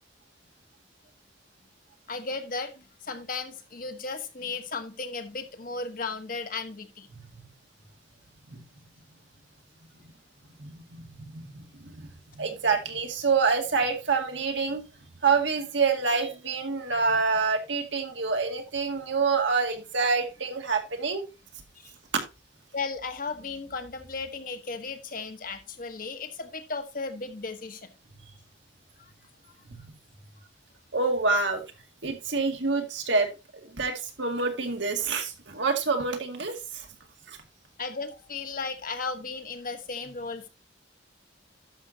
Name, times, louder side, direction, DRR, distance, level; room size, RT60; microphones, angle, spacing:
voice 1, 2.1-7.1 21.7-21.9 22.7-27.9 29.0-29.1 37.8-40.5, left 4 dB, 50° left, 1.3 m, -35 dB
voice 2, 10.6-11.0 11.3-12.1 12.4-14.8 15.2-21.2 29.7-29.8 30.9-31.6 32.0-33.3 33.6-36.9 37.3-37.4, right 4 dB, 80° right, 2.1 m, -27 dB
11.5 x 6.7 x 2.9 m
head